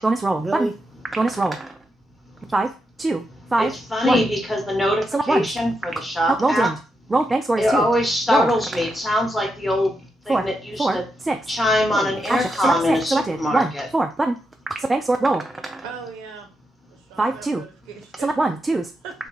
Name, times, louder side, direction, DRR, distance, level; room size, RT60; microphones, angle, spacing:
voice 1, 0.0-0.8 1.1-1.8 2.5-2.7 3.0-3.2 3.5-3.7 4.0-4.2 5.1-5.5 6.4-6.8 7.1-7.9 8.3-8.5 10.3-10.5 10.8-11.0 11.2-11.4 11.9-14.4 14.8-15.8 17.2-17.6 18.2-18.9, right 2 dB, 15° right, 5 dB, 0.3 m, -22 dB
voice 2, 3.6-6.7 7.6-9.9 10.3-11.1 11.5-13.9, left 1 dB, 10° left, 2 dB, 1.0 m, -22 dB
voice 3, 15.8-16.5 16.9-18.4 19.0-19.1, right 6 dB, 65° right, 4 dB, 0.6 m, -38 dB
2.5 x 2.3 x 3.1 m, 0.32 s
hypercardioid pair, 60°, 0 cm